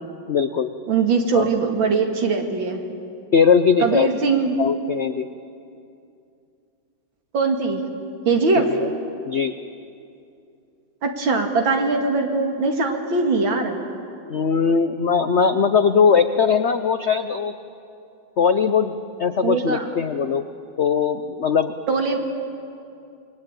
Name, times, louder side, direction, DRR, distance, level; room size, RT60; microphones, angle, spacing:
voice 1, 0.3-0.7 1.3-1.5 3.3-4.1 4.6-5.3 8.7-8.8 9.3-9.5 14.3-17.5 18.4-18.9 19.2-20.4 20.8-21.7, left 6 dB, 75° left, 10 dB, 0.6 m, -19 dB
voice 2, 0.9-2.8 3.8-4.6 7.3-7.8 8.3-8.7 11.0-13.8 19.4-19.8 21.9-22.2, right 4 dB, 70° right, 4 dB, 3.0 m, -21 dB
28.5 x 21.0 x 9.0 m, 2.6 s
omnidirectional pair, 2.2 m